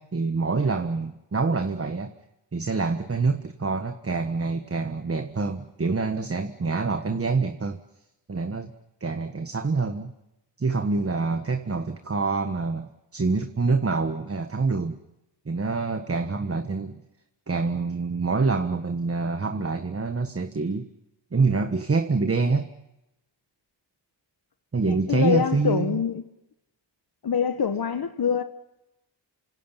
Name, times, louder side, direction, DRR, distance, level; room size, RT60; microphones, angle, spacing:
voice 1, 0.0-2.1 2.5-7.8 8.3-8.7 9.0-10.1 10.6-15.0 15.4-17.0 17.5-20.9 21.3-22.7 24.7-26.0, right 4 dB, 30° right, 1.5 m, -26 dB
voice 2, 24.9-26.2 27.2-28.4, left 7 dB, 55° left, 1.4 m, -25 dB
28.5 x 26.0 x 5.9 m
cardioid pair, 75°, 43 cm